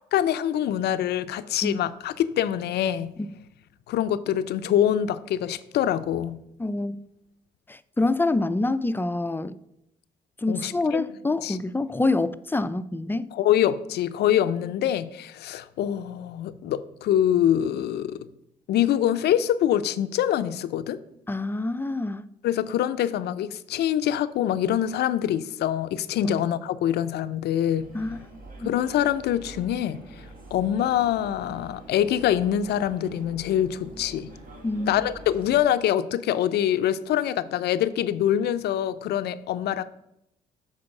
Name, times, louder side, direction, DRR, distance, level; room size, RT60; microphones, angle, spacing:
voice 1, 0.1-3.1 3.9-6.4 10.5-11.1 11.4-11.6 13.3-18.3 18.7-21.0 22.4-27.9 28.6-30.0 30.5-34.3 34.9-39.8, left 11 dB, 75° left, 0.5 m, -25 dB
voice 2, 6.6-7.0 7.7-9.6 10.4-13.3 21.3-22.2 26.2-26.4 27.9-28.2 28.6-28.7 34.6-35.0, left 2 dB, 10° left, 0.4 m, -26 dB
sound 1, 27.7-35.6, right 2 dB, 55° right, 1.8 m, -45 dB
7.6 x 4.0 x 5.9 m
supercardioid pair, 65°, 17 cm